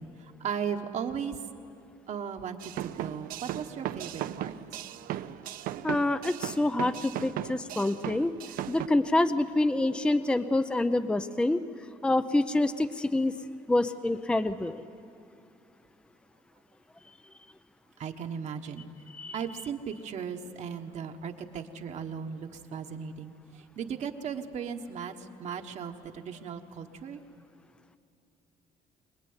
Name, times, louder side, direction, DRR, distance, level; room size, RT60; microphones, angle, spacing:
voice 1, 0.0-1.4 2.1-4.6 18.0-18.8 19.3-27.2, right 7 dB, 55° right, 4 dB, 1.3 m, -37 dB
sound 1, 2.6-8.9, right 12 dB, 80° right, 0.7 m, -37 dB
voice 2, 5.8-8.3 8.7-11.6 12.0-13.3 13.7-14.8 19.1-19.4, left 2 dB, 5° left, 11 dB, 0.5 m, -26 dB
25.0 x 19.5 x 9.6 m, 2.5 s
cardioid pair, 140°, 14 cm